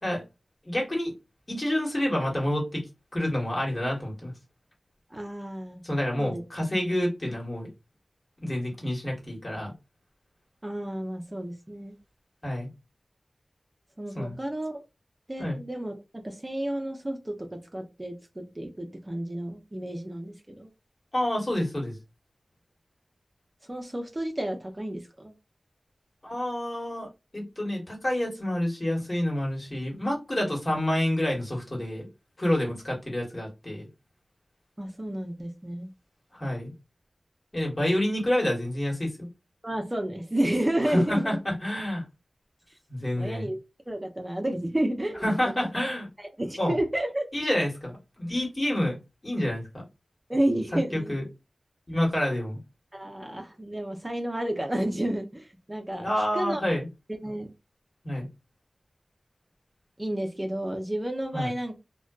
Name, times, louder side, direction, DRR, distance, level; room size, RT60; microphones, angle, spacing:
voice 1, 0.6-1.1 1.5-2.8 3.1-4.3 5.8-7.7 8.4-9.7 12.4-12.7 14.1-14.4 15.4-15.6 21.1-21.9 26.2-27.1 27.3-32.1 32.4-33.9 36.3-36.7 37.5-39.3 40.8-42.0 42.9-43.5 45.2-46.1 46.6-46.8 47.3-49.0 49.2-49.6 50.9-51.2 51.9-52.6 55.9-56.9 58.0-58.3 61.3-61.5, left 1 dB, 40° left, 1.3 m, -28 dB
voice 2, 5.1-5.8 6.2-6.4 10.6-11.9 14.0-14.8 15.3-16.0 16.2-20.7 23.7-25.3 34.8-35.9 39.6-41.4 43.2-43.6 43.9-45.7 46.2-47.3 50.3-51.2 52.9-56.6 57.2-57.5 60.0-61.8, right 1 dB, 25° right, 0.5 m, -31 dB
2.5 x 2.2 x 2.3 m
wide cardioid pair, 45°, 0 cm